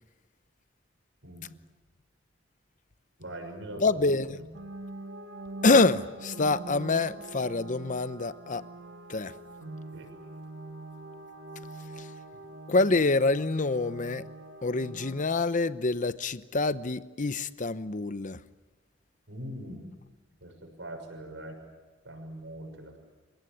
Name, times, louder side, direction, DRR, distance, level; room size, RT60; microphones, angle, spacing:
voice 1, 3.2-4.0 4.4-4.5 9.9-10.1 19.3-19.8 20.4-21.6 22.0-23.0, right 1 dB, 70° right, 6.4 m, -42 dB
voice 2, 3.8-4.4 5.6-8.6 9.1-9.3 12.0-12.1 12.7-14.2 14.6-18.4, left 3 dB, 40° left, 0.8 m, -26 dB
sound 1, 4.5-15.2, right 2 dB, 85° right, 2.3 m, -43 dB
28.5 x 17.5 x 9.9 m
head